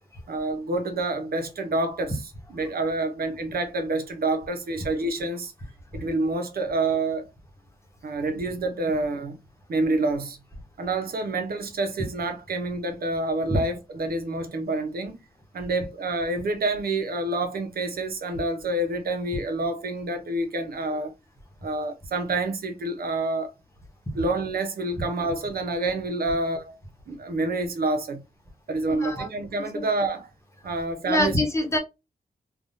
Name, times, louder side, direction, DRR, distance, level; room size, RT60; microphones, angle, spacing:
voice 1, 0.3-5.5 5.9-7.3 8.0-9.4 9.7-10.4 10.8-15.2 15.5-21.1 21.6-23.5 24.1-26.8 27.1-28.2 28.7-30.3 30.6-31.4, right 2 dB, 75° right, 0.8 m, -28 dB
voice 2, 28.9-29.3 31.1-31.8, left 1 dB, 20° left, 1.0 m, -24 dB
3.6 x 2.3 x 2.5 m
wide cardioid pair, 115°, 16 cm